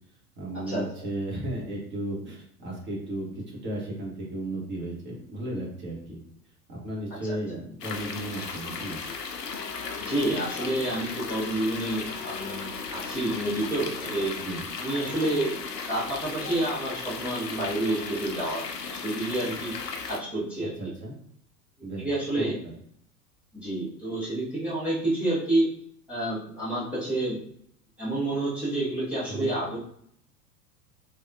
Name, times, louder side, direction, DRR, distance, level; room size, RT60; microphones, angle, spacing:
voice 1, 0.4-6.2 6.7-9.0 14.4-14.6 20.6-21.1 21.8-22.0 22.4-22.5 29.3-29.5, right 1 dB, 25° right, -4 dB, 1.2 m, -34 dB
sound 1, 7.8-20.2, left 5 dB, 80° left, 0.6 m, -36 dB
voice 2, 10.0-14.3 14.8-15.6 15.9-19.7 20.1-20.9 22.0-22.5 23.5-25.7 26.1-27.4 28.0-29.8, right 1 dB, 5° right, -11 dB, 0.4 m, -29 dB
3.3 x 2.2 x 2.6 m, 0.68 s
figure-of-eight pair, 90°, 48 cm